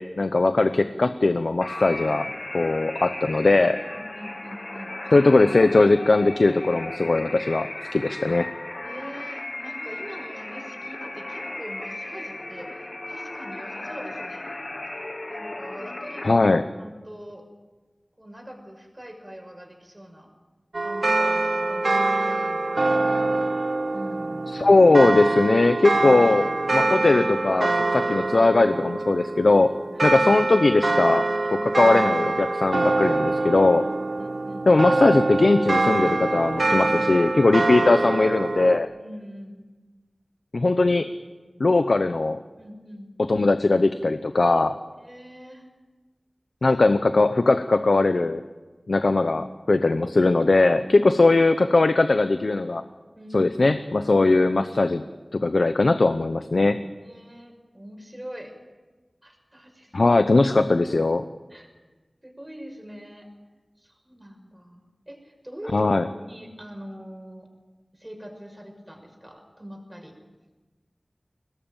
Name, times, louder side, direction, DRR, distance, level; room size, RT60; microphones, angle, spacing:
voice 1, 0.0-2.3 2.5-3.8 5.1-8.5 16.2-16.6 24.5-29.7 30.0-31.2 31.6-33.8 34.7-38.9 40.5-41.1 41.6-42.4 43.3-44.7 46.6-48.4 48.9-52.8 53.3-55.0 55.3-56.8 59.9-61.2 65.7-66.1, left 2 dB, 75° left, 10 dB, 0.8 m, -20 dB
sound 1, 1.6-16.3, left 2 dB, 45° left, 1.3 m, -36 dB
voice 2, 3.9-4.9 8.8-14.5 15.3-16.4 16.8-17.5 18.2-20.3 20.8-22.7 23.9-24.5 29.9-30.1 31.4-32.0 34.0-34.7 38.9-39.6 41.5-41.8 42.6-43.1 45.0-45.7 53.1-53.5 57.0-58.6 59.2-60.1 60.6-60.8 61.5-61.7 62.2-63.3 63.8-67.5 67.9-70.1, equal, 20° right, 3 dB, 5.7 m, -43 dB
sound 2, 20.7-38.8, right 2 dB, 75° right, 0.9 m, -24 dB
22.0 x 18.5 x 9.0 m, 1.3 s
wide cardioid pair, 60°, 0 cm